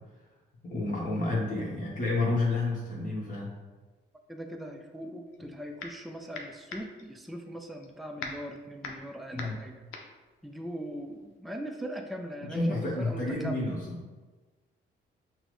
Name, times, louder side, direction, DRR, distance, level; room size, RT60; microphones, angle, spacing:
voice 1, 0.6-3.5 9.3-9.6 12.4-13.8, left 2 dB, 40° left, -5 dB, 1.1 m, -30 dB
voice 2, 4.3-9.8 10.4-13.7, equal, ahead, 4 dB, 0.4 m, -40 dB
sound 1, 5.3-6.1 6.3-11.3, left 4 dB, 90° left, 0.5 m, -42 dB
5.8 x 2.1 x 3.1 m, 1.3 s
cardioid pair, 90°, 20 cm